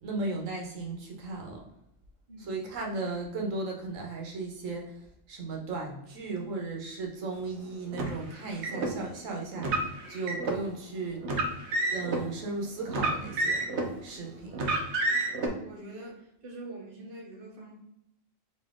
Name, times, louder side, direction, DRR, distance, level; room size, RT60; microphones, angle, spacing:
voice 1, 0.0-1.6 2.4-11.3 11.9-13.6 14.0-14.6, right 3 dB, 85° right, 1 dB, 1.3 m, -36 dB
Car, 7.9-8.9 9.6-10.6 11.2-12.2 12.9-14.0 14.5-15.5, right 2 dB, 65° right, 1.0 m, -29 dB
voice 2, 15.4-17.7, right 2 dB, 45° right, -1 dB, 1.2 m, -44 dB
4.2 x 2.8 x 3.5 m, 0.81 s
omnidirectional pair, 1.3 m